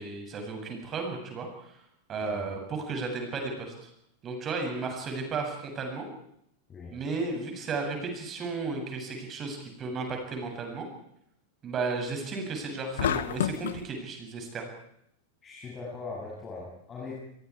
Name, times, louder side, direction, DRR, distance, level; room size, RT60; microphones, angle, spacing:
voice 1, 0.0-1.8 2.1-3.9 4.2-6.1 6.9-10.9 11.6-14.7, right 4 dB, 25° right, 3 dB, 7.7 m, -34 dB
sound 1, 13.0-13.8, left 10 dB, 60° left, 1.0 m, -29 dB
voice 2, 15.4-17.2, left 4 dB, 20° left, -5 dB, 7.5 m, -40 dB
29.0 x 23.0 x 4.9 m, 0.73 s
figure-of-eight pair, 90°, 0 cm